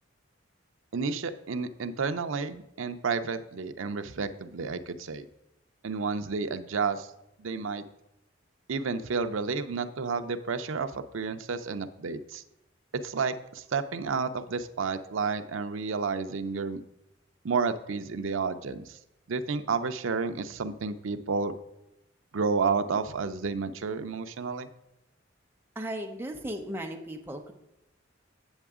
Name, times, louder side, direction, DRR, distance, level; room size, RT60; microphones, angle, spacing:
voice 1, 0.9-5.3 5.8-7.1 7.4-7.8 8.7-12.4 12.9-16.8 17.4-19.0 19.3-21.5 22.3-24.7, right 5 dB, 80° right, 9 dB, 0.5 m, -31 dB
voice 2, 25.8-27.5, right 1 dB, 10° right, 2 dB, 0.7 m, -36 dB
8.0 x 7.7 x 3.6 m, 0.85 s
head